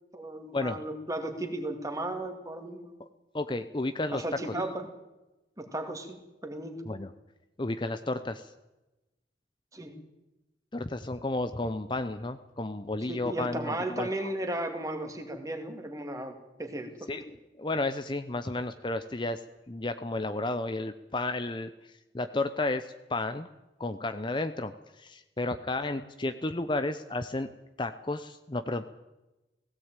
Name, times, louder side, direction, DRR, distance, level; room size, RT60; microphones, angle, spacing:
voice 1, 0.1-3.0 4.1-4.9 5.6-6.8 9.7-10.0 13.0-17.1 25.8-25.9, right 1 dB, 20° right, 5 dB, 2.5 m, -35 dB
voice 2, 3.3-4.2 6.9-7.1 7.6-8.5 10.7-14.3 17.1-23.5 23.8-27.5 27.8-28.8, left 2 dB, 25° left, 9 dB, 0.7 m, -32 dB
17.5 x 16.5 x 9.0 m, 1.0 s
head